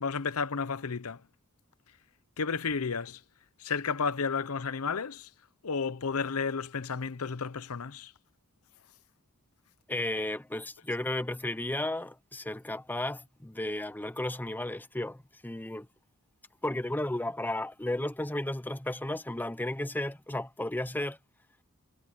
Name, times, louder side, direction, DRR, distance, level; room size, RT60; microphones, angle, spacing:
voice 1, 0.0-1.2 2.4-3.2 3.6-5.3 5.6-8.1, left 5 dB, 70° left, 0.8 m, -32 dB
voice 2, 9.9-15.9 16.6-21.2, left 1 dB, 10° left, 0.7 m, -33 dB
head